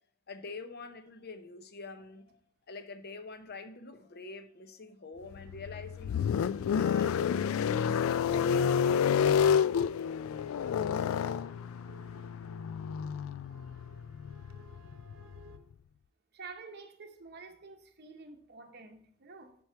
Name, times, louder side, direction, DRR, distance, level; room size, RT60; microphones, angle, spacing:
voice 1, 0.3-2.4 2.7-6.3 6.7-7.3 7.6-9.6, left 4 dB, 50° left, 0.8 m, -46 dB
sound 1, 5.3-15.6, left 7 dB, 75° left, 0.3 m, -29 dB
sound 2, 10.3-15.6, right 2 dB, 75° right, 1.0 m, -57 dB
voice 2, 16.3-19.6, right 4 dB, 50° right, 0.8 m, -49 dB
10.5 x 4.7 x 4.5 m
head